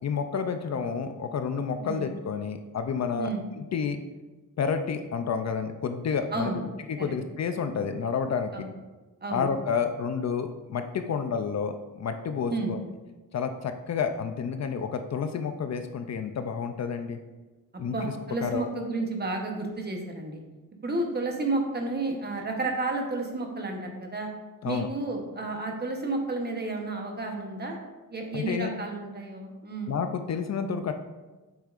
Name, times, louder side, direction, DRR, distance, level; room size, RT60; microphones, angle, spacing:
voice 1, 0.0-4.0 4.6-6.5 6.9-8.5 9.3-12.8 13.3-17.2 17.8-18.1 18.4-18.7 24.6-24.9 28.3-28.7 29.9-30.9, left 6 dB, 50° left, 8 dB, 0.4 m, -30 dB
voice 2, 6.3-7.1 8.5-8.7 9.2-9.5 12.5-12.7 17.7-20.4 20.8-24.3 24.6-27.8 28.1-29.9, right 2 dB, 30° right, 2 dB, 0.9 m, -31 dB
8.2 x 6.4 x 2.5 m, 1.2 s
wide cardioid pair, 175°, 35 cm